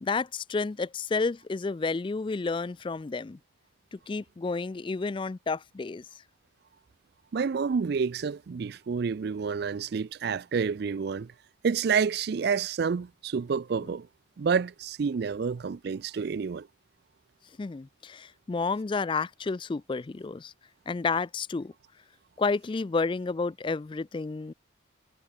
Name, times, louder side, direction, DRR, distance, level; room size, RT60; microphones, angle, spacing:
voice 1, 0.0-3.4 3.9-6.0 17.6-20.5 20.9-21.7 22.4-24.5, left 4 dB, 25° left, 0.3 m, -30 dB
voice 2, 7.3-11.3 11.6-14.1 14.4-16.7, right 5 dB, 55° right, 0.4 m, -29 dB
head